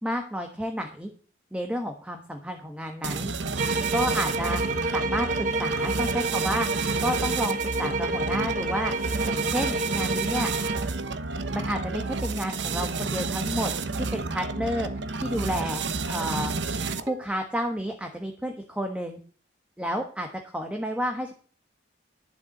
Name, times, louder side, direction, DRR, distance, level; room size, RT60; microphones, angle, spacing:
voice 1, 0.0-1.1 1.5-3.3 3.9-4.6 4.9-6.7 7.0-8.9 9.2-10.5 11.5-14.9 15.2-16.5 17.0-19.2 19.8-21.3, equal, 5° right, 4 dB, 1.3 m, -31 dB
sound 1, 3.0-17.2, right 3 dB, 75° right, 1.0 m, -30 dB
sound 2, 3.6-10.9, right 3 dB, 45° right, 1.4 m, -29 dB
11.5 x 7.0 x 7.8 m, 0.42 s
head